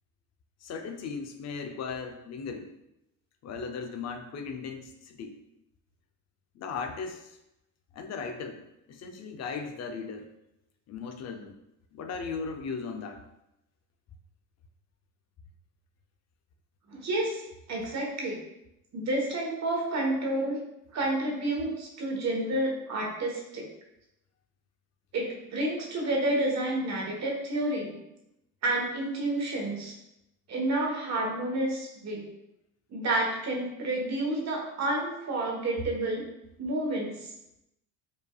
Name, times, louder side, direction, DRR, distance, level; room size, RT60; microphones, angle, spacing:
voice 1, 0.6-2.7 3.4-5.4 6.5-7.4 7.9-8.6 8.9-10.3 10.9-11.6 11.9-13.2, left 5 dB, 45° left, 5 dB, 0.6 m, -37 dB
voice 2, 16.9-17.4 17.7-18.4 18.9-20.6 20.9-23.7 25.1-28.0 28.6-29.9 30.5-32.3 32.9-36.2 36.6-37.3, right 1 dB, 45° right, -1 dB, 1.3 m, -30 dB
5.2 x 2.6 x 2.3 m, 0.86 s
supercardioid pair, 95°, 38 cm